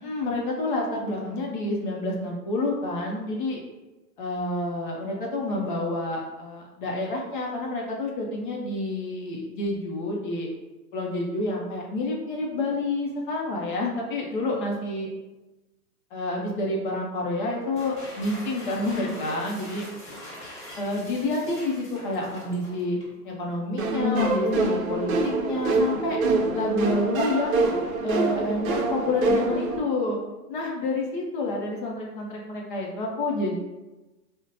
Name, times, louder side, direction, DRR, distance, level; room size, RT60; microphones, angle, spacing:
voice 1, 0.0-3.6 4.2-10.5 10.9-15.1 16.1-19.9 20.8-23.0 23.2-25.1 25.4-26.2 26.5-27.7 28.0-30.2 30.5-33.6, left 2 dB, 35° left, -1 dB, 0.5 m, -28 dB
sound 1, 17.6-23.2, left 1 dB, 15° left, 1.2 m, -42 dB
sound 2, 23.8-29.8, right 2 dB, 60° right, 0.6 m, -25 dB
3.9 x 2.1 x 2.6 m, 1.1 s
hypercardioid pair, 120°, 47 cm